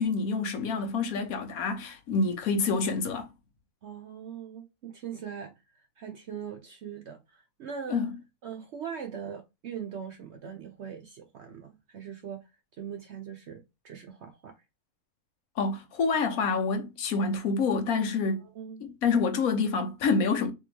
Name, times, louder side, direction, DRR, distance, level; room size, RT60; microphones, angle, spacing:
voice 1, 0.0-3.3 7.9-8.1 15.6-18.4 18.8-20.5, left 4 dB, 70° left, 1.1 m, -27 dB
voice 2, 3.8-8.0 8.4-12.5 12.8-14.6 18.4-18.8, right 7 dB, 65° right, 0.7 m, -41 dB
3.6 x 2.9 x 3.2 m
omnidirectional pair, 1.6 m